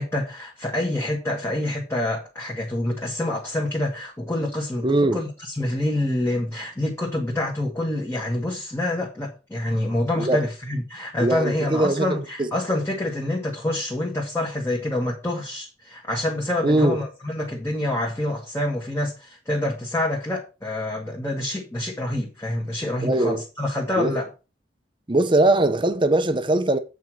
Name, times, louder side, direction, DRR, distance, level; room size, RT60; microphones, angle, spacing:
voice 1, 0.0-24.3, left 1 dB, 15° left, 1.6 m, -27 dB
voice 2, 4.8-5.2 10.2-10.4 11.2-12.5 16.6-17.0 23.0-23.4 24.0-24.2 25.1-26.8, right 2 dB, 25° right, 0.8 m, -21 dB
8.3 x 4.5 x 6.2 m
head